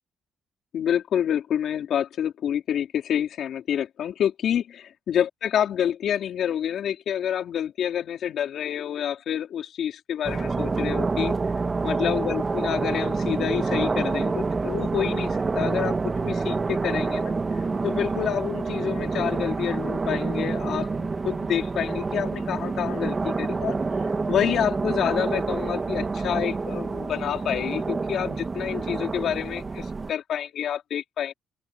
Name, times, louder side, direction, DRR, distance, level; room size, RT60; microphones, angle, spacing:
voice 1, 0.7-11.3 11.8-15.9 16.2-17.3 17.8-31.3, left 9 dB, 70° left, 4.1 m, -28 dB
sound 1, 10.2-30.1, right 4 dB, 30° right, 2.0 m, -27 dB
open air
cardioid pair, 90°, 0 cm